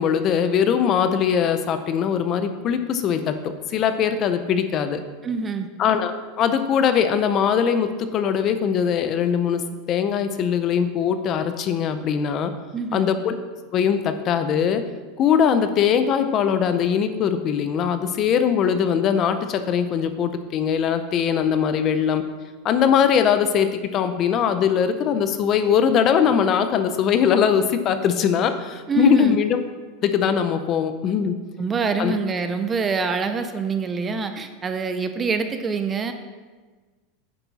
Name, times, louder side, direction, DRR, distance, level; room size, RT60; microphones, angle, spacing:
voice 1, 0.0-5.0 5.8-12.5 12.9-13.3 13.7-14.8 15.2-22.2 22.6-29.6 30.0-31.3 32.0-32.1, left 7 dB, 30° left, 9 dB, 0.6 m, -21 dB
voice 2, 5.2-5.7 12.7-13.1 28.9-29.4 31.6-36.1, right 5 dB, 15° right, 8 dB, 0.5 m, -25 dB
9.3 x 6.9 x 4.1 m, 1.4 s
supercardioid pair, 160°, 0 cm